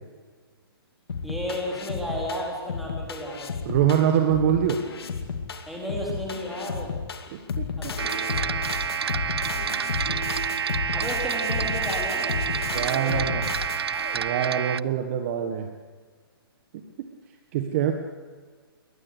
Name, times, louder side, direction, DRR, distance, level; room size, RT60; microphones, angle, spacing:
sound 1, 1.1-14.3, left 5 dB, 75° left, 2.6 m, -33 dB
voice 1, 1.2-3.6 5.7-6.9 7.8-8.5 10.9-12.4 13.0-13.3, equal, ahead, -3 dB, 4.1 m, -33 dB
voice 2, 3.6-4.8 7.3-7.9 12.7-13.4 14.1-15.7 16.7-17.1 17.5-17.9, right 9 dB, 35° right, 5 dB, 1.5 m, -24 dB
sound 2, 8.0-14.8, right 7 dB, 85° right, 0.6 m, -28 dB
21.5 x 19.0 x 8.2 m, 1.5 s
hypercardioid pair, 160°, 13 cm